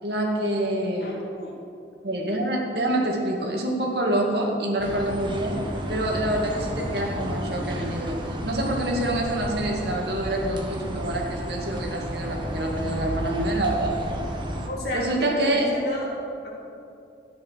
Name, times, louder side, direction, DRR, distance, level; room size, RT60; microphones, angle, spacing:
voice 1, 0.0-1.1 2.0-5.6 5.9-14.0 14.9-15.7, right 1 dB, 65° right, 0 dB, 2.2 m, -26 dB
voice 2, 1.0-1.5 4.2-4.5 14.6-16.1 16.4-16.5, left 1 dB, 65° left, -5 dB, 3.7 m, -32 dB
sound 1, 4.8-14.7, equal, 25° right, 1.3 m, -32 dB
13.5 x 9.9 x 6.5 m, 2.6 s
head